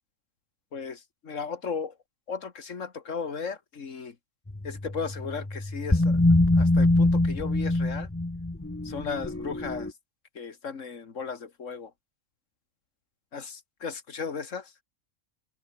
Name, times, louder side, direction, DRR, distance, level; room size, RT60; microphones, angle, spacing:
voice 1, 0.7-1.9 2.3-4.2 4.6-6.2 6.6-8.1 8.8-9.9 10.4-11.9 13.3-13.5 13.8-14.7, left 5 dB, 80° left, 2.1 m, -35 dB
sound 1, 4.5-9.9, left 2 dB, 10° left, 1.0 m, -24 dB
omnidirectional pair, 1.3 m